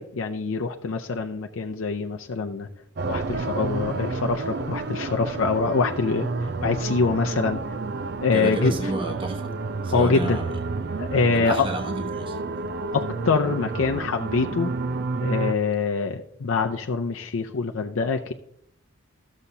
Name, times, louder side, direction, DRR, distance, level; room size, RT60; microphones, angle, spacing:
voice 1, 0.0-2.7 3.0-6.3 6.6-7.6 8.2-8.9 9.9-10.4 11.0-11.7 12.9-14.7 15.2-18.3, left 4 dB, 80° left, 0.5 m, -24 dB
sound 1, 3.0-15.5, right 3 dB, 55° right, 0.4 m, -30 dB
voice 2, 8.3-9.5 9.8-10.5 11.3-12.4, right 2 dB, 25° right, 1.0 m, -31 dB
13.0 x 7.2 x 2.7 m
head